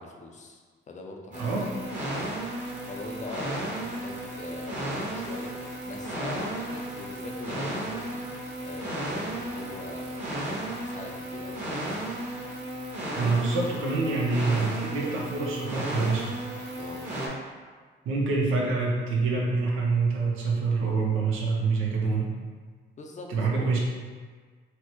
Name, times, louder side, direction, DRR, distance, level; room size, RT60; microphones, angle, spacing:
voice 1, 0.0-8.2 8.6-10.3 10.8-11.6 16.8-17.1 23.0-23.7, left 2 dB, 35° left, 1 dB, 0.5 m, -43 dB
sound 1, 1.3-17.3, right 1 dB, 40° right, 1.1 m, -34 dB
voice 2, 1.4-1.7 13.1-16.3 18.0-22.3 23.3-23.8, right 4 dB, 85° right, -2 dB, 0.7 m, -26 dB
4.2 x 2.1 x 3.0 m, 1.5 s
cardioid pair, 90°, 20 cm